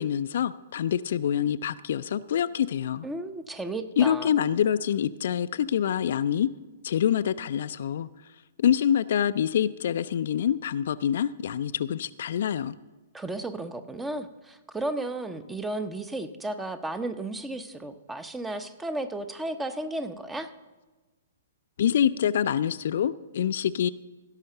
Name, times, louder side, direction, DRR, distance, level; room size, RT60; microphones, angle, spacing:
voice 1, 0.0-3.1 4.0-6.5 6.8-8.1 8.6-12.7 21.8-23.9, left 9 dB, 60° left, 13 dB, 0.4 m, -26 dB
voice 2, 3.0-4.3 13.1-20.5, right 2 dB, 10° right, 11 dB, 0.8 m, -34 dB
16.5 x 5.7 x 6.6 m, 1.2 s
figure-of-eight pair, 115°, 0 cm